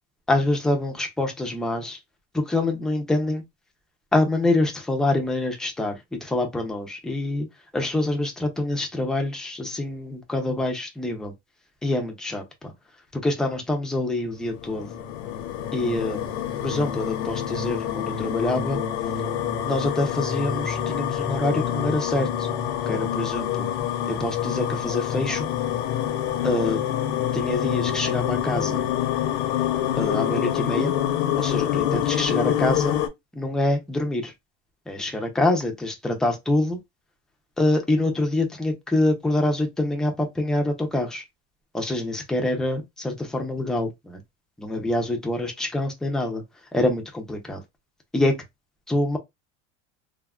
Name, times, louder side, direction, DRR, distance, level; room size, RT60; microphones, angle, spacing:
voice 1, 0.3-2.0 2.3-3.4 4.1-7.5 7.7-11.3 11.8-12.7 13.1-14.9 15.7-16.2 16.6-18.8 19.6-22.5 22.9-23.7 24.1-25.5 26.4-26.8 27.3-28.9 30.0-30.9 31.4-33.0 33.3-34.3 34.9-36.8 37.6-41.2 41.7-44.2 44.6-46.4 46.7-47.6 48.1-48.4 48.9-49.2, left 2 dB, ahead, 0.3 m, -25 dB
sound 1, 14.4-33.1, left 10 dB, 80° left, 0.7 m, -26 dB
3.5 x 2.0 x 2.2 m
cardioid pair, 145°, 34 cm